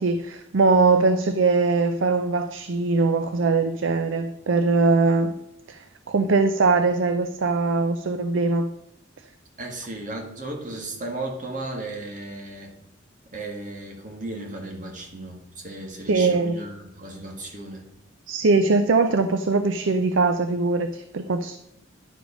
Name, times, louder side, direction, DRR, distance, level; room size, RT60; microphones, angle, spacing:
voice 1, 0.0-5.4 5.7-8.7 16.1-16.6 18.3-21.6, right 3 dB, 75° right, 9 dB, 0.5 m, -21 dB
voice 2, 9.6-12.7 13.3-17.9, right 2 dB, 40° right, 1 dB, 1.9 m, -35 dB
10.5 x 5.0 x 5.1 m, 0.84 s
head